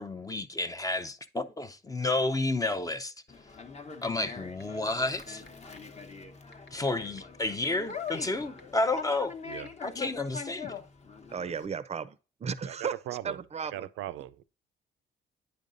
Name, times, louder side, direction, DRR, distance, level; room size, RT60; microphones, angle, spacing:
voice 1, 0.0-3.1 4.0-5.4 6.7-9.4 9.8-10.8, left 2 dB, 15° left, 0.5 m, -31 dB
Conversation, 3.3-11.7, left 5 dB, 35° left, 0.9 m, -43 dB
sound 1, 4.6-4.7 5.1-5.5 5.8-5.9 6.5-8.3 8.6-8.7 9.5-9.7, left 4 dB, 75° left, 1.0 m, -51 dB
voice 2, 11.3-13.9, right 6 dB, 35° right, 0.5 m, -35 dB
voice 3, 12.6-13.4 13.7-14.4, right 13 dB, 85° right, 0.5 m, -38 dB
9.1 x 5.1 x 2.6 m
cardioid pair, 90°, 20 cm